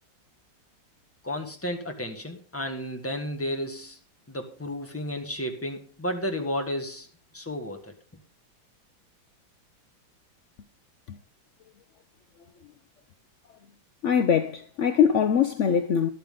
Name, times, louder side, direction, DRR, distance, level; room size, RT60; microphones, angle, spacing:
voice 1, 1.2-4.0 4.3-7.1 7.3-7.9, equal, 10° left, 1.5 m, -32 dB
voice 2, 14.0-16.1, left 7 dB, 70° left, 0.7 m, -22 dB
12.5 x 11.5 x 3.7 m
omnidirectional pair, 2.1 m